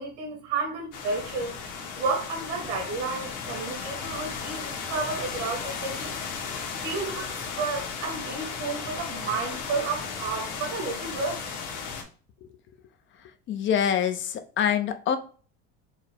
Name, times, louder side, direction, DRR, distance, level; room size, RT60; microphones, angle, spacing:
voice 1, 0.0-6.2 6.8-11.4, right 4 dB, 85° right, 1 dB, 2.0 m, -32 dB
sound 1, 0.9-12.0, left 5 dB, 65° left, 1.3 m, -35 dB
voice 2, 13.5-15.2, left 8 dB, 35° left, 9 dB, 0.5 m, -25 dB
4.7 x 2.0 x 4.4 m, 0.38 s
cardioid pair, 130°, 33 cm